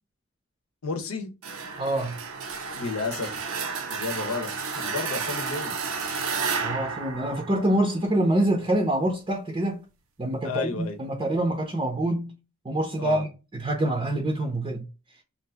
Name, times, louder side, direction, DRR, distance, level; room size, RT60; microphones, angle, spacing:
voice 1, 0.8-1.3 2.7-3.3 3.9-5.7 10.4-11.0 13.0-13.2, left 4 dB, 85° left, 0.8 m, -32 dB
sound 1, 1.4-8.1, right 5 dB, 75° right, 0.6 m, -32 dB
voice 2, 1.8-2.2 6.6-9.8 10.2-12.3 12.6-14.9, right 1 dB, 25° right, 0.6 m, -26 dB
2.8 x 2.5 x 3.3 m
head